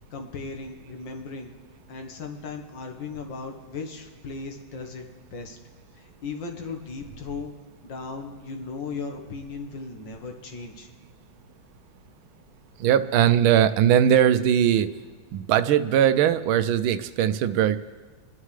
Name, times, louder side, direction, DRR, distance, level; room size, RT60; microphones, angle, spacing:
voice 1, 0.1-1.5 1.9-5.1 5.3-5.6 5.9-7.5 7.8-10.9, left 4 dB, 65° left, 3 dB, 1.9 m, -37 dB
voice 2, 12.8-14.9 15.3-17.8, right 10 dB, 85° right, 12 dB, 1.4 m, -20 dB
28.5 x 11.0 x 3.2 m, 1.5 s
omnidirectional pair, 2.2 m